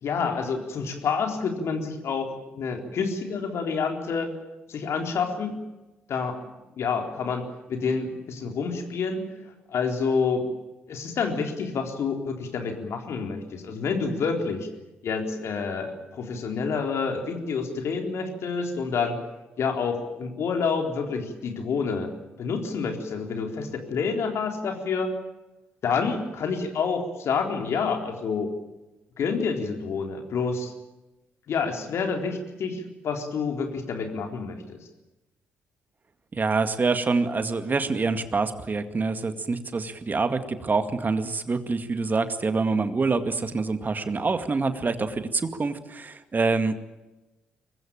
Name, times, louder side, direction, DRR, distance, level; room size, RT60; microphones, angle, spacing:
voice 1, 0.0-4.3 4.7-5.5 6.1-6.4 6.7-7.4 7.7-9.2 9.7-10.4 10.9-14.7 15.0-19.1 19.6-22.1 22.4-25.1 25.8-28.5 29.2-30.7 31.5-34.8, left 5 dB, 60° left, 4 dB, 3.9 m, -28 dB
voice 2, 36.3-46.7, right 4 dB, 35° right, 9 dB, 2.1 m, -26 dB
24.0 x 20.0 x 9.0 m, 1.0 s
hypercardioid pair, 40°, 5 cm